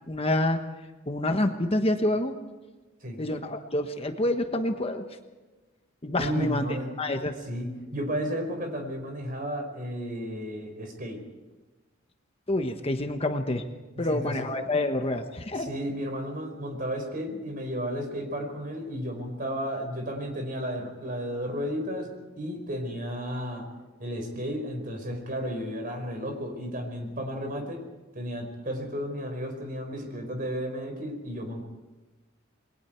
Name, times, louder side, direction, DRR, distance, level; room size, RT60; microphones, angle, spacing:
voice 1, 0.1-0.6 1.1-2.3 3.2-5.0 6.0-6.7 7.0-7.4 12.5-13.6 14.0-15.7, left 1 dB, 30° left, 5 dB, 1.2 m, -27 dB
voice 2, 6.1-6.9 7.5-11.2 14.1-14.5 15.5-22.1 22.4-23.6 24.0-27.8 28.1-31.6, equal, 45° right, 4 dB, 4.8 m, -33 dB
28.5 x 21.5 x 4.5 m, 1.2 s
head